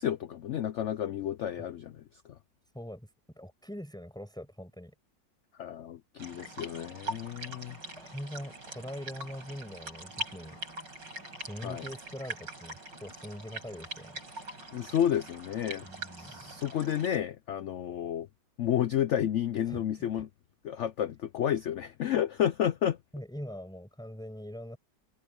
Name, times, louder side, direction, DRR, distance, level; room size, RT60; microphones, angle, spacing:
voice 1, 0.0-2.4 5.6-7.8 11.6-11.9 14.7-15.9 16.2-18.3 18.6-20.3 20.6-23.0, left 10 dB, 85° left, 0.6 m, -31 dB
voice 2, 2.7-4.9 8.0-10.6 11.4-14.2 15.8-16.6 19.7-20.2 23.1-24.8, equal, ahead, 5.9 m, -43 dB
sound 1, 6.2-17.2, right 2 dB, 85° right, 8.0 m, -43 dB
omnidirectional pair, 1.9 m